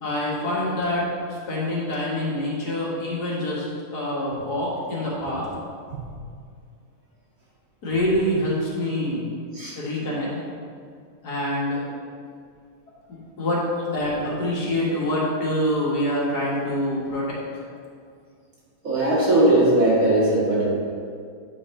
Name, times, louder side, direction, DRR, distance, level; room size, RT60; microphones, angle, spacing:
voice 1, 0.0-3.7 3.9-5.5 7.8-9.3 9.8-10.3 11.2-11.8 13.4-13.6 13.9-17.4, left 1 dB, 90° left, -5 dB, 2.1 m, -25 dB
voice 2, 18.8-20.7, right 1 dB, 60° right, -7 dB, 2.3 m, -19 dB
8.6 x 4.8 x 3.7 m, 2.2 s
omnidirectional pair, 1.7 m